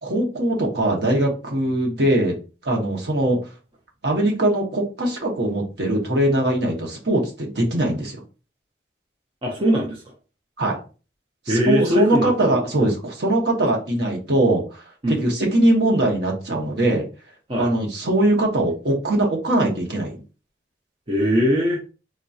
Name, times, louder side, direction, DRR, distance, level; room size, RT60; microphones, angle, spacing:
voice 1, 0.0-2.3 2.6-3.4 4.0-8.2 10.6-10.8 11.5-17.1 17.6-20.2, right 1 dB, 60° right, 0 dB, 1.0 m, -21 dB
voice 2, 9.4-10.0 11.5-12.6 15.0-15.2 17.5-17.7 21.1-21.8, equal, 30° right, -2 dB, 0.6 m, -21 dB
3.8 x 2.7 x 2.3 m, 0.34 s
head